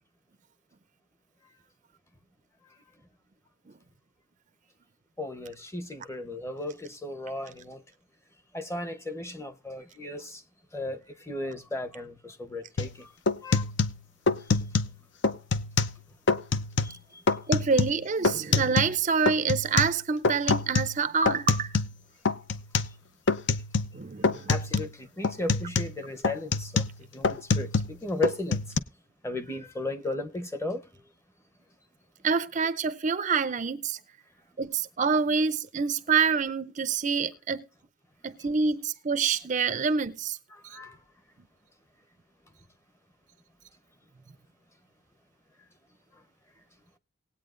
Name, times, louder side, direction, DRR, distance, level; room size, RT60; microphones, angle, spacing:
voice 1, 5.2-7.8 8.5-10.4 10.7-13.1 13.4-13.6 16.8-17.2 24.5-26.9 27.1-28.6 29.2-30.8 40.5-41.0, left 1 dB, 15° left, 0.8 m, -35 dB
sound 1, 12.8-13.0 13.3-15.0 15.2-16.0 16.3-17.0 17.3-19.0 19.3-22.0 22.2-23.0 23.3-24.0 24.2-24.9 25.2-28.0 28.2-28.8, left 4 dB, 60° left, 0.6 m, -26 dB
voice 2, 17.5-21.7 23.9-24.5 32.2-34.0 34.6-37.6 38.2-40.4, right 5 dB, 35° right, 0.5 m, -27 dB
19.0 x 8.7 x 2.5 m
head